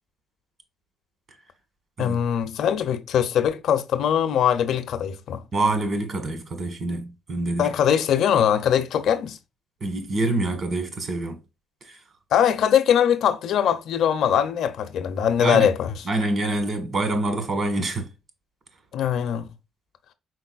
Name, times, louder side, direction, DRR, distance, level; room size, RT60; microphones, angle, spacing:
voice 1, 2.0-5.4 7.6-9.4 12.3-15.9 18.9-19.5, left 9 dB, 70° left, 0.5 m, -21 dB
voice 2, 5.5-7.7 9.8-11.4 11.8-12.0 15.4-15.7 16.0-18.1, right 2 dB, 45° right, 1.4 m, -26 dB
4.7 x 4.0 x 2.4 m
cardioid pair, 105°, 0 cm